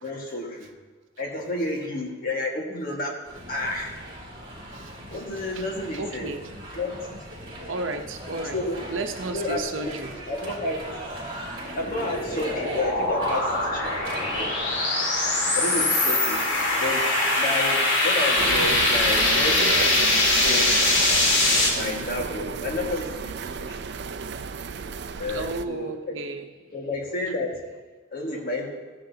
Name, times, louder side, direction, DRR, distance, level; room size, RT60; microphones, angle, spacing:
voice 1, 0.0-0.7 1.2-3.2 3.5-3.9 5.1-6.3 6.7-7.0 7.4-7.7 8.5-8.8 9.3-10.0 10.3-10.8 11.7-14.6 15.5-16.5 16.8-17.0 17.4-19.7 20.3-20.7 21.7-23.8 25.2-26.2 26.7-27.6 28.1-28.8, left 2 dB, 50° left, 0 dB, 1.7 m, -31 dB
sound 1, 3.2-14.8, right 1 dB, 30° right, 3.3 m, -39 dB
voice 2, 5.9-6.4 7.7-8.6 8.9-10.1 25.3-26.4, right 3 dB, 80° right, 6 dB, 0.9 m, -33 dB
sound 2, 11.1-21.7, left 2 dB, 70° left, 2.2 m, -22 dB
sound 3, 18.4-25.6, right 5 dB, 60° right, 0.4 m, -32 dB
14.5 x 10.0 x 2.8 m, 1.3 s
head